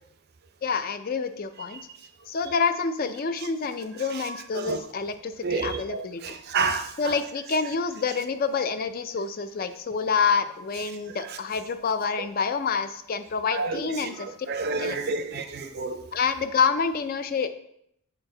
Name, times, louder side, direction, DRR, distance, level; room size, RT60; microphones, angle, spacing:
voice 1, 0.6-1.8 2.3-6.2 7.0-14.3 14.7-15.0 16.1-17.5, left 5 dB, 40° left, 10 dB, 0.4 m, -27 dB
voice 2, 5.4-6.9 13.5-16.0, right 4 dB, 45° right, 7 dB, 0.5 m, -29 dB
7.1 x 4.5 x 3.8 m, 0.73 s
head